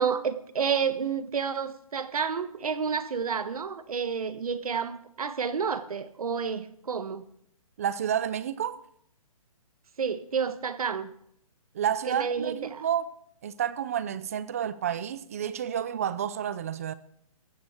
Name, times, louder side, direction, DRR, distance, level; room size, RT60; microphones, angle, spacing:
voice 1, 0.0-7.2 10.0-11.1 12.1-12.9, right 6 dB, 80° right, 1.4 m, -30 dB
voice 2, 7.8-8.8 11.7-13.1 13.4-16.9, right 9 dB, 25° right, 0.5 m, -30 dB
15.5 x 13.0 x 4.4 m
hypercardioid pair, 170°, 19 cm